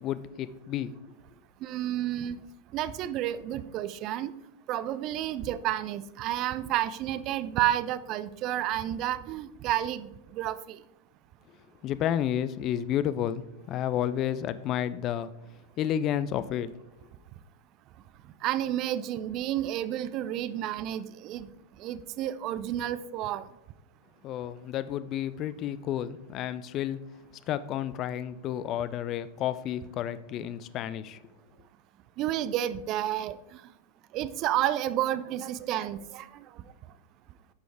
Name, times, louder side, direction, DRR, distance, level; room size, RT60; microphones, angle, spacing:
voice 1, 0.0-0.9 11.8-15.3 15.8-16.7 24.2-27.0 27.5-31.2, left 10 dB, 35° left, 15 dB, 0.4 m, -31 dB
voice 2, 1.6-2.4 2.7-4.3 4.7-10.8 18.4-21.5 21.8-23.5 32.2-33.6 34.1-36.5, right 12 dB, 40° right, 15 dB, 0.4 m, -31 dB
9.5 x 6.0 x 3.4 m, 0.96 s
figure-of-eight pair, 90°, 0 cm